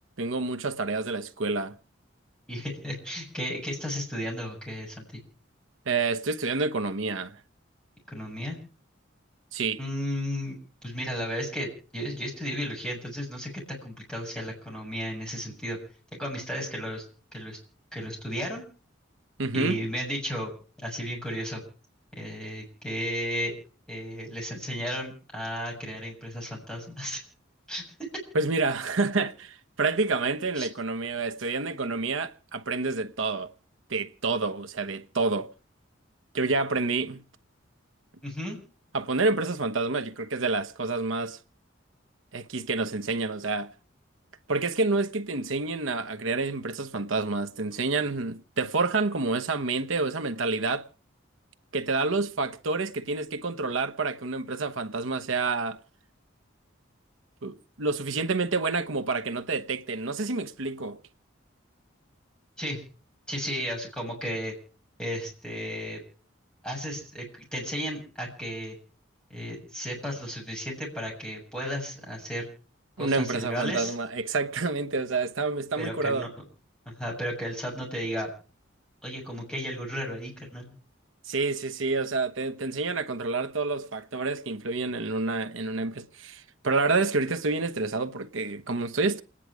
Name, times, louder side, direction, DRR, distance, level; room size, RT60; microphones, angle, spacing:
voice 1, 0.2-1.8 5.9-7.4 9.5-9.8 19.4-19.8 28.3-33.5 33.9-35.5 36.3-37.2 38.9-41.4 42.3-43.7 44.5-50.9 51.7-55.8 57.4-61.0 73.0-76.3 81.3-89.2, right 3 dB, 80° right, 1.1 m, -28 dB
voice 2, 2.5-5.2 8.1-8.6 9.8-15.8 16.1-17.0 17.3-17.6 17.9-18.7 19.5-20.5 20.8-21.6 22.2-23.6 23.9-27.2 27.7-27.8 30.5-30.7 38.2-38.6 62.6-62.8 63.3-64.6 65.0-66.0 66.6-68.8 69.3-72.5 73.0-73.9 75.8-76.3 76.9-78.3 79.0-80.8, equal, 5° left, 7.2 m, -34 dB
28.5 x 10.0 x 4.8 m
head